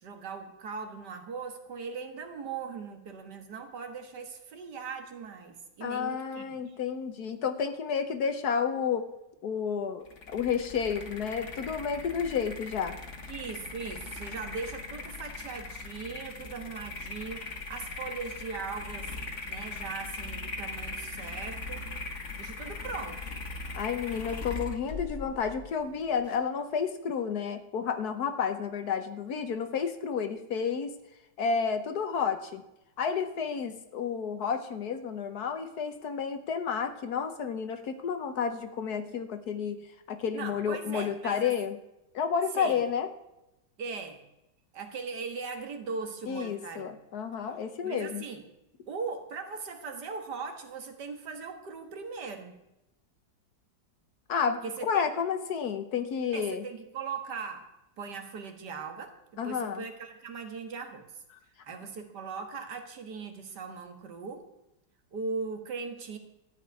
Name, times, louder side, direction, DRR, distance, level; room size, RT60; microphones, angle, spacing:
voice 1, 0.0-6.8 13.3-19.2 19.5-21.9 22.4-23.4 40.3-41.5 42.5-42.8 43.8-44.2 44.7-46.9 47.8-48.4 48.9-52.6 54.6-55.0 56.3-61.0 61.6-64.4 65.1-66.2, right 5 dB, 65° right, 6 dB, 2.0 m, -39 dB
voice 2, 5.8-9.1 9.4-13.0 23.7-30.9 31.4-32.6 33.0-39.8 40.1-41.8 42.1-43.1 46.3-48.2 54.3-56.6 59.4-59.8, left 6 dB, 65° left, 9 dB, 1.3 m, -31 dB
sound 1, 10.1-26.4, left 3 dB, 40° left, 1.6 m, -40 dB
13.0 x 5.6 x 9.4 m, 0.90 s
omnidirectional pair, 2.0 m